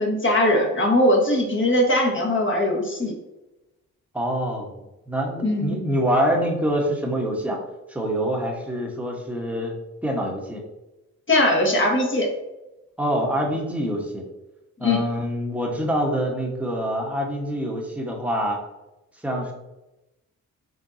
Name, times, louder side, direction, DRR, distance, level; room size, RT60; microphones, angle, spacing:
voice 1, 0.0-3.1 5.4-5.8 11.3-12.3 14.8-15.0, left 1 dB, 30° left, 0 dB, 1.5 m, -20 dB
voice 2, 4.1-4.7 5.1-7.6 7.9-9.7 10.0-10.6 13.0-14.2 14.8-18.6 19.2-19.5, equal, 5° right, -1 dB, 1.3 m, -25 dB
4.6 x 3.7 x 2.8 m, 0.98 s
hypercardioid pair, 45°, 38 cm